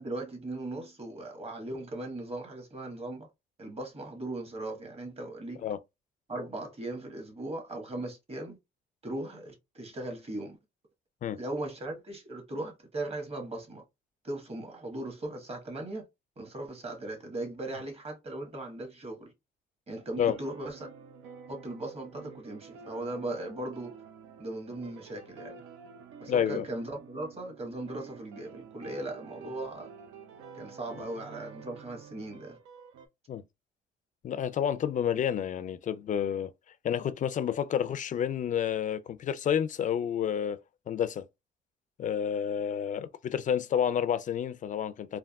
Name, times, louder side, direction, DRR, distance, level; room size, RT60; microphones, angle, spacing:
voice 1, 0.0-3.3 3.6-5.6 6.3-8.6 9.0-10.6 11.2-13.8 14.2-16.1 16.4-19.3 19.9-20.9 21.5-24.0 24.4-25.6 26.2-29.9 30.5-32.6, right 2 dB, 30° right, 1.3 m, -38 dB
sound 1, 20.1-33.1, right 6 dB, 80° right, 0.6 m, -50 dB
voice 2, 26.3-26.6 33.3-33.4 34.2-36.5 36.8-40.6 40.9-41.2 42.0-45.2, left 9 dB, 40° left, 0.4 m, -29 dB
3.4 x 2.3 x 2.3 m
cardioid pair, 90°, 20 cm